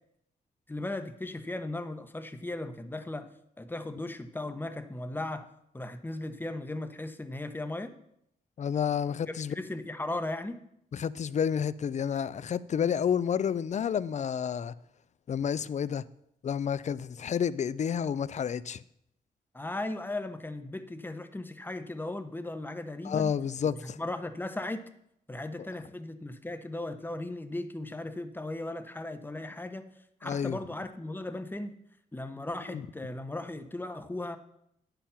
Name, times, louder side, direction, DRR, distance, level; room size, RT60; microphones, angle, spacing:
voice 1, 0.7-3.3 3.6-5.5 5.7-7.9 9.3-10.6 19.5-23.3 23.6-24.8 25.3-29.9 30.2-31.7 32.1-34.4, left 2 dB, 15° left, 0.9 m, -37 dB
voice 2, 8.6-9.5 10.9-14.7 15.3-16.0 16.4-18.8 23.0-24.0 30.2-30.6 32.7-32.8, left 7 dB, 45° left, 0.4 m, -30 dB
9.1 x 6.9 x 5.7 m
cardioid pair, 80°, 16 cm